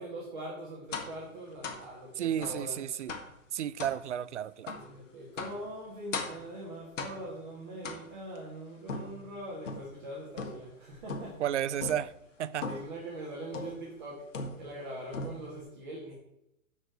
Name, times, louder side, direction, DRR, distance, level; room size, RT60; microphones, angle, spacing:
voice 1, 0.0-2.8 4.7-11.4 12.6-16.1, right 1 dB, 35° right, 2.5 m, -42 dB
sound 1, 0.9-1.2 1.6-1.9 2.4-2.6 3.1-3.4 3.8-4.0 4.7-4.9 5.4-5.6 6.1-6.5 7.0-7.4 7.8-8.4 8.9-10.0 10.4-10.8 11.1-11.4 11.8-12.1 12.6-13.0 13.5-13.9 14.3-14.8 15.1-15.6, left 4 dB, 60° left, 1.9 m, -39 dB
voice 2, 2.2-3.1 3.5-4.8 11.4-12.7, right 10 dB, 55° right, 0.5 m, -33 dB
11.0 x 5.1 x 6.3 m
hypercardioid pair, 180°, 42 cm